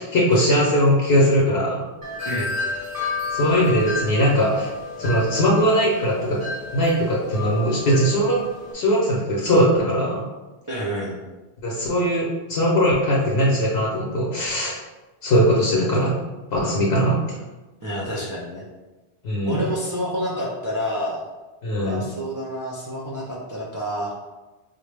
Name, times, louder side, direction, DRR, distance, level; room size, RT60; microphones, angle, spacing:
voice 1, 0.0-1.8 3.3-4.7 5.0-6.4 6.7-8.4 8.7-10.2 11.6-14.7 15.2-16.1 16.5-17.4 19.2-19.6 21.6-22.0, equal, 80° left, -3 dB, 0.9 m, -20 dB
Wind chime, 2.0-8.7, left 3 dB, 20° left, 0.6 m, -31 dB
voice 2, 10.7-11.2 17.8-18.7 19.5-21.3 21.8-24.1, equal, 30° right, -5 dB, 0.3 m, -28 dB
4.3 x 2.1 x 3.3 m, 1.1 s
omnidirectional pair, 1.1 m